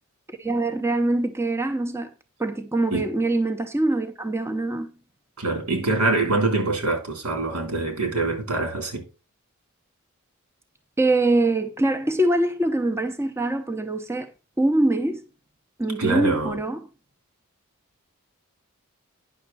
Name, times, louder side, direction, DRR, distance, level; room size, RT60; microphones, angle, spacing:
voice 1, 0.3-2.1 2.4-4.9 11.0-14.3 14.6-15.2 15.8-16.8, right 2 dB, 10° right, 0.7 m, -23 dB
voice 2, 5.4-9.0 16.0-16.6, right 2 dB, 85° right, 3.4 m, -24 dB
9.7 x 6.5 x 4.0 m
head